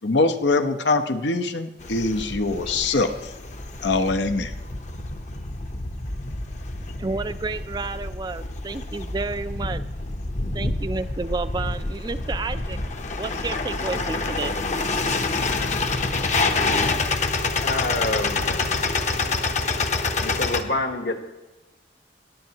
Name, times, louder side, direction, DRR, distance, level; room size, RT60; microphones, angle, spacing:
voice 1, 0.0-3.1 3.8-4.5, left 3 dB, 90° left, 7 dB, 0.8 m, -23 dB
sound 1, 1.8-20.6, left 3 dB, 40° left, 0.7 m, -27 dB
voice 2, 7.0-9.8 10.5-12.8 13.2-14.5, right 3 dB, 25° right, 12 dB, 0.3 m, -31 dB
voice 3, 17.6-18.9 20.2-21.3, left 2 dB, 70° left, 6 dB, 1.2 m, -28 dB
17.0 x 10.5 x 2.9 m, 1.1 s
head